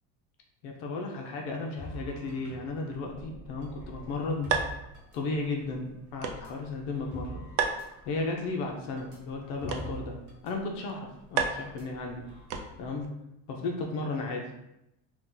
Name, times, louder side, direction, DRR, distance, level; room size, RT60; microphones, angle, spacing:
voice 1, 0.6-4.5 5.1-7.5 8.1-10.2 10.4-12.2 12.8-13.1 13.5-14.4, left 3 dB, 55° left, 1 dB, 0.5 m, -34 dB
sound 1, 1.8-5.6 6.3-10.5 10.8-11.0 11.6-12.4, equal, 40° right, 0.8 m, -46 dB
sound 2, 3.7-13.1, right 6 dB, 70° right, 0.5 m, -37 dB
2.8 x 2.2 x 3.7 m, 0.87 s
cardioid pair, 175°, 36 cm